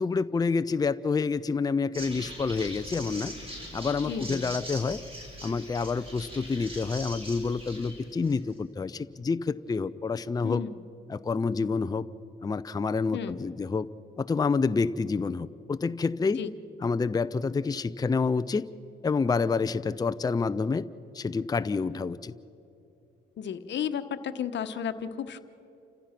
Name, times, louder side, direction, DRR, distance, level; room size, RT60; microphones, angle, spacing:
voice 1, 0.0-3.3 3.7-5.0 5.4-10.6 11.1-12.0 12.4-13.9 14.2-16.4 16.8-18.7 19.0-20.9 21.1-22.3, left 4 dB, 20° left, 12 dB, 0.5 m, -28 dB
sound 1, 1.9-8.5, equal, 30° right, 5.9 m, -41 dB
voice 2, 4.0-4.5 10.4-10.8 13.1-13.4 16.4-16.5 23.4-25.4, left 8 dB, 65° left, 10 dB, 1.1 m, -33 dB
29.0 x 15.5 x 5.9 m, 2.8 s
cardioid pair, 90°, 20 cm